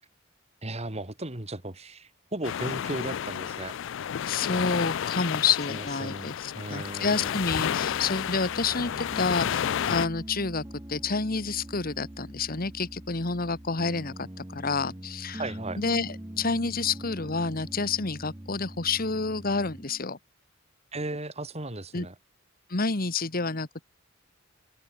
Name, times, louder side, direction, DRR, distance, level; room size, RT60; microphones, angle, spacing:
voice 1, 0.6-3.8 5.7-7.4 15.4-15.8 20.9-22.1, right 2 dB, 30° right, 3.1 m, -36 dB
sound 1, 2.4-10.1, left 9 dB, 65° left, 0.4 m, -31 dB
voice 2, 4.3-15.4 15.8-20.2 21.9-22.1 22.7-23.9, left 4 dB, 45° left, 1.6 m, -29 dB
Piano, 7.5-20.0, right 1 dB, 15° right, 1.0 m, -43 dB
open air
head